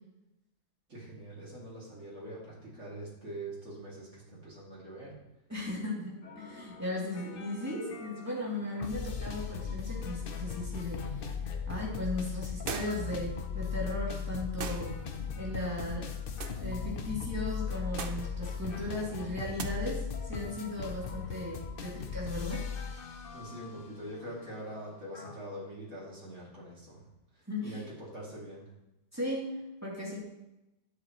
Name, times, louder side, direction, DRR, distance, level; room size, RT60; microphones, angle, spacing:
voice 1, 0.9-5.1 23.3-27.1 27.6-28.6, right 1 dB, 85° right, -6 dB, 2.9 m, -44 dB
voice 2, 5.5-11.3 11.7-15.0 15.3-16.1 16.6-22.7 27.5-27.9 29.1-30.2, left 1 dB, 15° right, -5 dB, 2.9 m, -37 dB
sound 1, 6.2-25.4, left 6 dB, 55° left, 0.9 m, -38 dB
sound 2, 12.7-13.1 14.6-14.9 16.4-16.6 18.0-18.3 19.6-19.7, right 6 dB, 55° right, 0.8 m, -38 dB
11.5 x 7.9 x 3.0 m, 0.91 s
omnidirectional pair, 1.2 m